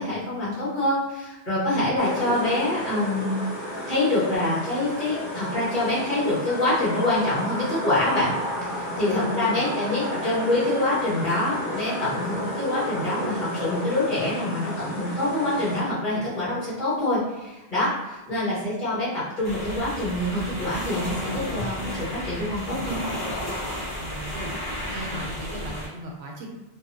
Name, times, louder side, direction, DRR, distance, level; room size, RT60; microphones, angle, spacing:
voice 1, 0.0-3.3 3.8-8.3 8.7-23.0, left 1 dB, 50° left, -10 dB, 1.5 m, -25 dB
sound 1, 2.0-15.8, equal, 20° left, 0.7 m, -32 dB
voice 2, 9.1-10.2 23.9-24.5 24.9-26.5, left 1 dB, 80° right, 0 dB, 0.9 m, -37 dB
sound 2, 19.4-25.9, equal, 65° left, 1.6 m, -32 dB
3.0 x 2.1 x 2.6 m, 1.1 s
omnidirectional pair, 1.1 m